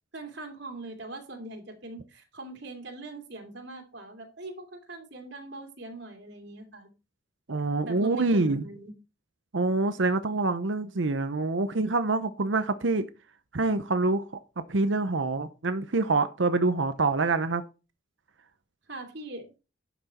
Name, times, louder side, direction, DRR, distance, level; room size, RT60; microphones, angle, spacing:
voice 1, 0.1-6.9 7.8-8.9 18.9-19.5, right 2 dB, 70° right, 4 dB, 2.6 m, -41 dB
voice 2, 7.5-8.6 9.5-13.1 13.5-14.2 14.7-17.6, right 3 dB, 85° right, 11 dB, 0.8 m, -26 dB
12.0 x 6.1 x 4.2 m, 0.30 s
head